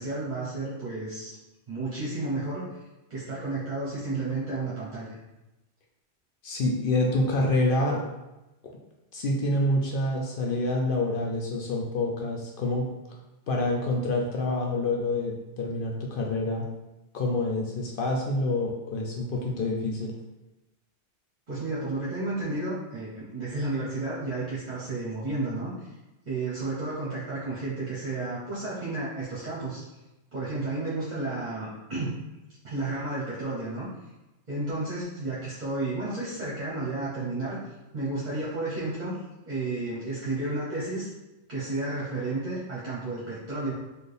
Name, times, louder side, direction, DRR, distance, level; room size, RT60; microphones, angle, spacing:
voice 1, 0.0-1.4 1.7-2.6 3.1-5.2 21.5-25.9 26.3-29.8 30.3-32.1 32.6-33.9 34.5-37.6 37.9-39.2 39.5-41.1 41.5-43.7, right 2 dB, 40° right, -8 dB, 0.9 m, -32 dB
voice 2, 6.4-8.0 9.1-12.9 13.5-16.6 17.1-20.1, left 2 dB, 60° left, 0 dB, 0.6 m, -27 dB
4.3 x 2.5 x 3.3 m, 1.0 s
omnidirectional pair, 1.2 m